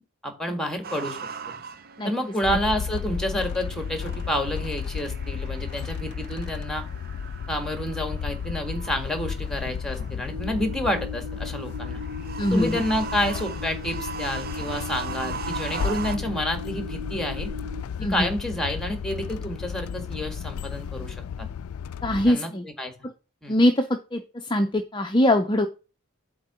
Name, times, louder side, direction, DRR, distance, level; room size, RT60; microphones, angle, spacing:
voice 1, 0.2-1.2 2.0-6.8 7.5-12.0 12.5-17.5 18.1-21.5 22.3-22.5 22.8-22.9 23.4-23.6, equal, ahead, 6 dB, 1.7 m, -29 dB
sound 1, 0.8-16.2, right 6 dB, 45° right, 0.6 m, -40 dB
sound 2, 2.4-22.3, left 6 dB, 75° left, 0.3 m, -33 dB
sound 3, 10.3-17.8, left 2 dB, 75° right, 1.7 m, -39 dB
voice 2, 12.4-12.8 18.0-18.3 22.0-22.7 23.0-23.1 23.5-25.7, left 1 dB, 20° left, 6 dB, 0.6 m, -23 dB
7.9 x 3.8 x 6.8 m, 0.32 s
head